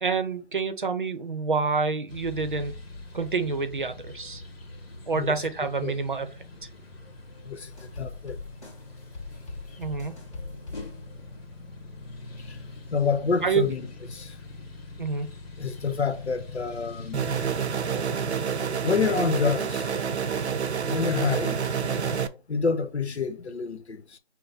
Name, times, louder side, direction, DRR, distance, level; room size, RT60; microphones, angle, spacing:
voice 1, 0.0-2.7 3.1-4.4 5.1-6.3 9.8-10.2 13.4-13.7 15.0-15.3, right 4 dB, 50° right, 0.7 m, -27 dB
sound 1, 2.1-17.5, left 2 dB, 65° left, 1.3 m, -43 dB
voice 2, 5.1-5.5 5.8-6.0 7.4-7.7 8.0-8.4 12.5-12.6 12.9-14.3 15.6-17.2 18.8-19.9 20.9-21.6 22.5-24.2, left 5 dB, 85° left, 0.8 m, -28 dB
sound 2, 7.7-11.4, left 3 dB, 25° left, 1.9 m, -42 dB
sound 3, 17.1-22.3, right 6 dB, 85° right, 0.6 m, -28 dB
6.1 x 2.1 x 3.8 m
figure-of-eight pair, 170°, 32 cm